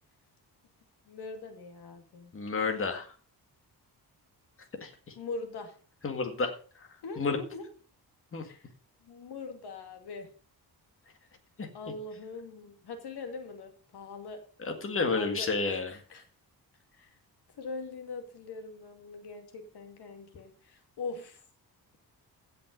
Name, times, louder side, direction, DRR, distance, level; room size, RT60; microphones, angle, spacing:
voice 1, 1.1-2.3 5.2-5.8 7.0-7.7 8.4-8.7 9.0-10.3 11.7-14.4 15.0-16.2 16.9-17.2 17.6-21.4, left 3 dB, 85° left, 6 dB, 2.4 m, -42 dB
voice 2, 2.3-3.1 4.8-5.1 6.0-6.9 7.2-7.4 8.3-8.5 11.6-11.7 14.6-15.9, left 4 dB, 35° left, 5 dB, 1.9 m, -31 dB
16.0 x 5.9 x 5.3 m, 0.38 s
wide cardioid pair, 155°, 39 cm